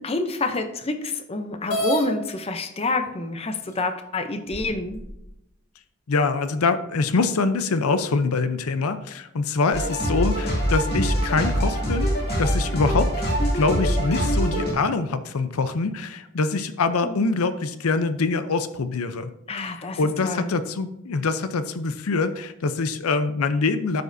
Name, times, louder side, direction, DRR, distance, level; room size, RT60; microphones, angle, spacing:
voice 1, 0.0-5.0 17.0-17.2 19.5-20.5, left 2 dB, 25° left, 7 dB, 0.5 m, -28 dB
sound 1, 1.7-2.1 3.1-3.2 3.8-3.9 4.5-5.2, right 1 dB, 70° left, 1.9 m, -27 dB
voice 2, 6.1-12.1 12.4-13.1 13.5-19.3 19.6-24.0, left 4 dB, 85° left, 11 dB, 0.6 m, -24 dB
Life-in-space-synth-loop, 9.7-14.7, equal, 45° left, 2.2 m, -24 dB
13.5 x 5.1 x 2.6 m, 0.87 s
head